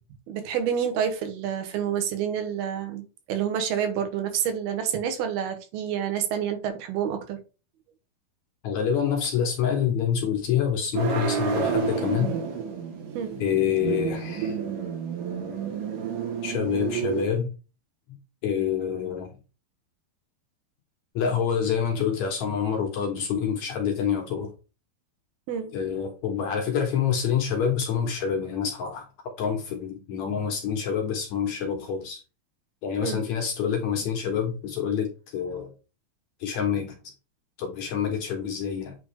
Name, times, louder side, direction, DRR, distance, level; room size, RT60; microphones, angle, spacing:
voice 1, 0.3-7.4 13.2-13.4 25.5-25.7 33.0-33.2, right 8 dB, 90° right, 3.1 m, -28 dB
voice 2, 8.6-12.3 13.4-14.6 16.4-17.5 18.4-19.3 21.1-24.5 25.7-29.1 29.4-32.2 32.8-35.7 36.4-37.0 37.6-39.0, left 7 dB, 65° left, 2.1 m, -27 dB
sound 1, 10.9-17.3, right 6 dB, 65° right, 2.8 m, -30 dB
8.5 x 3.7 x 3.5 m
omnidirectional pair, 4.3 m